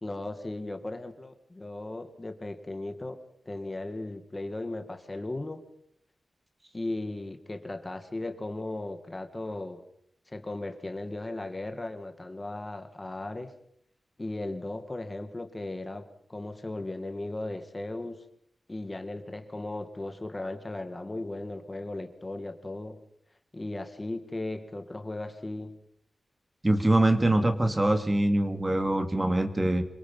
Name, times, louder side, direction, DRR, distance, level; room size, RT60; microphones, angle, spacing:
voice 1, 0.0-3.2 3.5-5.6 6.7-9.8 10.3-13.5 14.2-18.2 18.7-23.0 23.5-25.8, left 2 dB, 20° left, 7 dB, 1.9 m, -36 dB
voice 2, 26.6-29.8, right 1 dB, 15° right, 7 dB, 2.2 m, -24 dB
27.0 x 25.0 x 5.5 m, 0.69 s
wide cardioid pair, 160°, 0 cm